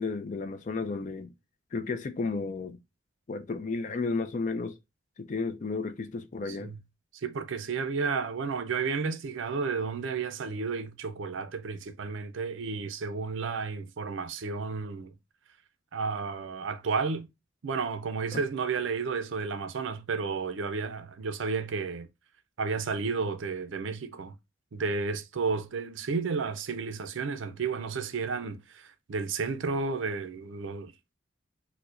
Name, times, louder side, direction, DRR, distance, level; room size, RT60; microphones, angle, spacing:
voice 1, 0.0-1.3 1.7-2.8 3.3-4.8 5.2-6.7 18.3-18.4, left 4 dB, 40° left, 0.4 m, -33 dB
voice 2, 6.5-6.8 7.1-15.1 15.9-17.3 17.6-22.1 22.6-24.3 24.7-30.9, right 4 dB, 70° right, 0.5 m, -32 dB
4.6 x 2.1 x 2.4 m
head